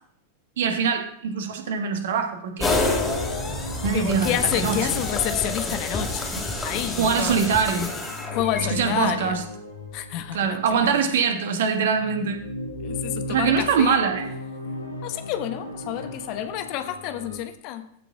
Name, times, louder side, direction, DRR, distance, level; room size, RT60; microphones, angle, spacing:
voice 1, 0.6-2.7 3.8-4.9 7.0-7.9 8.7-9.4 10.3-12.5 13.3-14.3, right 6 dB, 60° right, 6 dB, 1.5 m, -23 dB
sound 1, 2.6-11.1 11.7-17.4, left 2 dB, 80° left, 1.9 m, -37 dB
sound 2, 2.6-8.6, left 2 dB, 15° left, 2.1 m, -28 dB
voice 2, 3.9-6.3 6.6-7.4 8.3-9.4 9.9-10.9 12.8-14.0 15.0-17.9, left 11 dB, 45° left, 9 dB, 1.0 m, -29 dB
15.0 x 5.1 x 3.8 m, 0.66 s
figure-of-eight pair, 90°, 0 cm